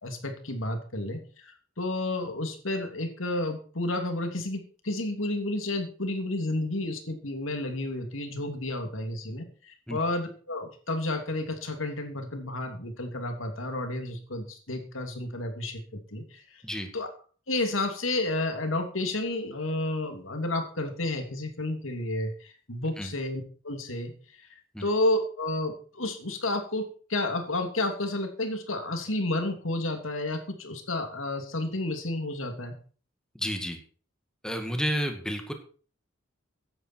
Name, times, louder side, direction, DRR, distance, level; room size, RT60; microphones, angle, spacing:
voice 1, 0.0-16.6 16.9-17.1 17.5-32.8, left 2 dB, 90° left, 5 dB, 3.0 m, -31 dB
voice 2, 33.4-33.8 34.4-35.5, equal, 5° left, 5 dB, 2.0 m, -31 dB
15.5 x 11.0 x 4.6 m, 0.41 s
head